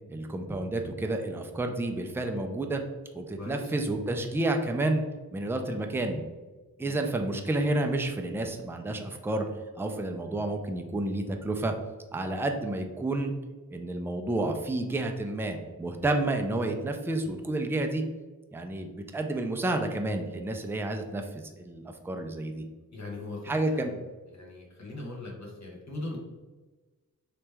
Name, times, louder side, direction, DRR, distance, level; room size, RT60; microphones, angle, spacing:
voice 1, 0.1-2.8 3.1-5.0 5.3-6.2 6.8-9.4 9.8-11.7 12.1-13.3 13.7-18.0 18.5-22.6 23.5-23.9, right 2 dB, 5° right, 4 dB, 0.4 m, -30 dB
voice 2, 3.4-3.7 6.8-7.0 22.9-24.0 24.3-26.2, left 2 dB, 50° left, -2 dB, 0.9 m, -40 dB
3.2 x 2.9 x 3.3 m, 1.2 s
wide cardioid pair, 70°, 35 cm